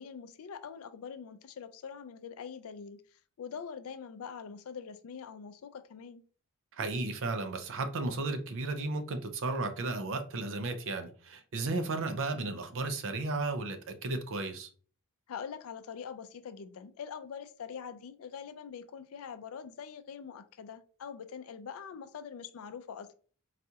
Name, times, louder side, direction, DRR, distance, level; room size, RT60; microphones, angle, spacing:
voice 1, 0.0-6.2 15.3-23.1, left 7 dB, 65° left, 0.4 m, -44 dB
voice 2, 6.7-14.7, right 3 dB, 60° right, 0.5 m, -34 dB
4.0 x 2.3 x 2.7 m
head